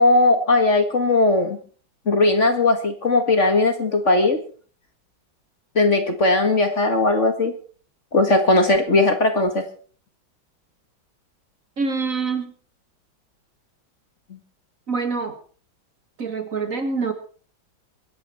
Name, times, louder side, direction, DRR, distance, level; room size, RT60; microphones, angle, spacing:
voice 1, 0.0-1.6 2.1-4.4 5.8-7.5 8.1-9.6, left 2 dB, 40° left, 7 dB, 1.9 m, -18 dB
voice 2, 11.8-12.5 14.9-15.4 16.2-17.1, right 4 dB, 45° right, 8 dB, 2.0 m, -25 dB
23.5 x 10.5 x 4.4 m, 0.42 s
omnidirectional pair, 2.2 m